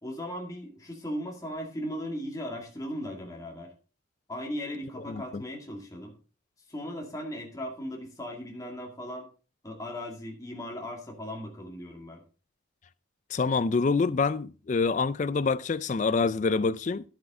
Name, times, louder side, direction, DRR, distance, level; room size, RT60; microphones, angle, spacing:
voice 1, 0.0-3.7 4.3-6.2 6.7-9.3 9.6-12.2, equal, 15° left, 2.2 m, -37 dB
voice 2, 5.1-5.4 13.3-17.0, left 4 dB, 35° left, 0.4 m, -26 dB
11.0 x 8.1 x 3.7 m
head